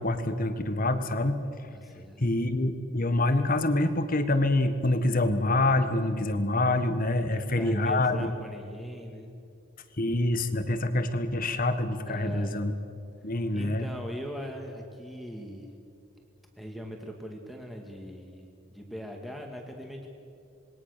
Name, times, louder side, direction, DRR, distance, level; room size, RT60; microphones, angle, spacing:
voice 1, 0.0-1.4 2.2-8.3 10.0-12.7 13.2-13.9, left 2 dB, 40° left, 10 dB, 1.4 m, -26 dB
voice 2, 1.7-2.2 7.2-7.3 7.6-9.3 12.1-12.9 13.5-15.7 16.6-20.1, equal, ahead, 1 dB, 2.2 m, -41 dB
26.5 x 21.5 x 6.7 m, 2.5 s
head